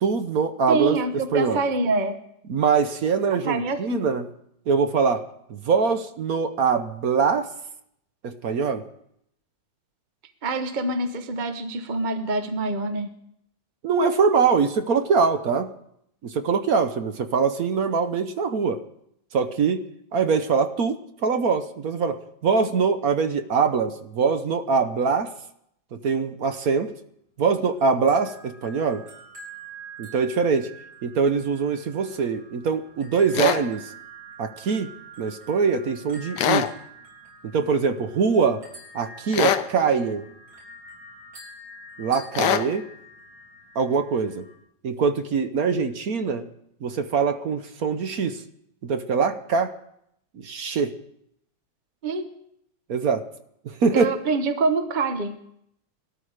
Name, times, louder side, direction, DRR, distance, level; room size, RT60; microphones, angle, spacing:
voice 1, 0.0-1.0 1.3-1.6 2.5-4.3 4.7-5.2 5.5-7.5 8.2-8.8 13.8-15.7 16.2-18.8 19.3-19.9 20.1-25.3 25.9-26.9 27.4-29.0 30.0-30.7 31.0-33.9 34.4-34.9 35.2-36.7 37.5-38.6 38.9-40.2 42.0-42.9 43.7-44.5 44.8-46.5 46.8-48.4 48.8-49.7 50.3-50.9 52.9-53.2 53.6-54.1, right 5 dB, 55° right, 9 dB, 1.1 m, -23 dB
voice 2, 0.7-2.2 3.3-4.0 10.4-13.1 52.0-52.3 53.9-55.4, right 3 dB, 35° right, 8 dB, 0.8 m, -25 dB
sound 1, 27.7-44.6, right 2 dB, 90° right, 4.6 m, -46 dB
sound 2, 33.3-33.6 36.4-36.7 39.3-39.7 42.4-42.7, left 10 dB, 70° left, 1.3 m, -22 dB
20.0 x 13.0 x 4.9 m, 0.74 s
omnidirectional pair, 2.1 m